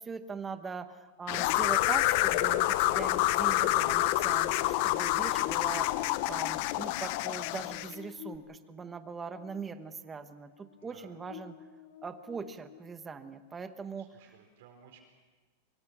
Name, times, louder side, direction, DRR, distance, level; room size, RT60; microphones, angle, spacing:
voice 1, 0.0-11.6 12.0-14.1, right 5 dB, 15° right, 9 dB, 1.1 m, -41 dB
sound 1, 1.3-7.9, left 16 dB, 50° left, 0.6 m, -28 dB
Buzz, 3.9-13.3, left 9 dB, 90° left, 3.5 m, -54 dB
voice 2, 10.8-11.2 14.0-15.0, right 8 dB, 65° right, 1 dB, 4.5 m, -57 dB
23.5 x 23.5 x 6.2 m, 1.3 s
supercardioid pair, 150°, 0 cm